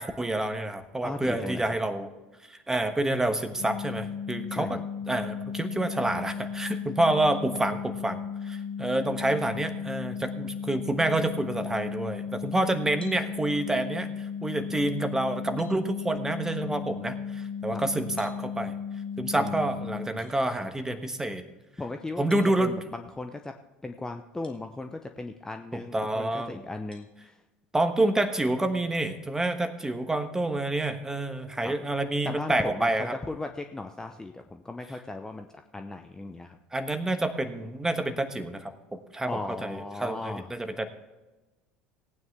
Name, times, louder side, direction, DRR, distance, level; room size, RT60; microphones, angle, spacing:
voice 1, 0.0-2.1 2.5-4.8 5.1-18.7 19.2-21.4 22.2-22.8 25.7-26.6 27.7-33.2 36.7-40.9, right 2 dB, 10° right, 9 dB, 1.3 m, -28 dB
voice 2, 1.0-1.7 4.6-4.8 17.7-17.8 19.4-20.2 21.8-23.6 23.8-27.4 31.6-31.7 32.2-36.6 39.3-40.5, left 2 dB, 10° left, 6 dB, 0.7 m, -37 dB
sound 1, 3.6-20.1, left 7 dB, 70° left, 2.2 m, -35 dB
sound 2, 13.0-13.3 14.9-15.0 15.6-15.8 18.2-18.4 20.2-20.3 22.3-22.5 24.4-24.6 25.2-25.3 26.9-27.1, left 2 dB, 90° left, 1.3 m, -50 dB
18.0 x 9.3 x 3.5 m, 1.1 s
figure-of-eight pair, 65°, 5 cm